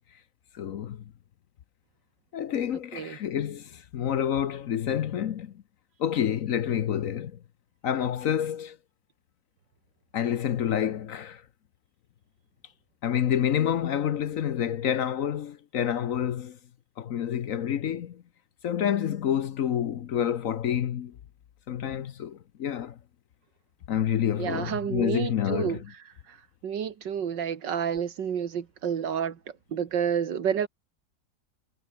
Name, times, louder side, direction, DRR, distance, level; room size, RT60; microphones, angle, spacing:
voice 1, 0.5-1.0 2.3-5.5 6.0-7.3 7.8-8.8 10.1-11.4 13.0-16.6 17.0-18.2 18.6-21.1 21.7-23.0 23.9-25.8, left 9 dB, 60° left, 1.1 m, -28 dB
voice 2, 24.4-26.4 26.6-30.7, right 8 dB, 90° right, 2.2 m, -30 dB
omnidirectional pair, 1.9 m